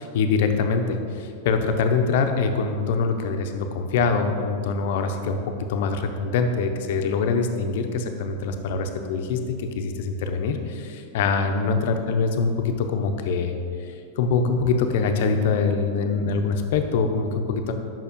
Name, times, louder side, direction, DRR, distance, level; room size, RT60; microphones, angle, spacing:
voice 1, 0.0-5.4 5.7-17.7, left 4 dB, 65° left, 6 dB, 0.7 m, -24 dB
5.8 x 4.8 x 5.2 m, 2.4 s
supercardioid pair, 140°, 0 cm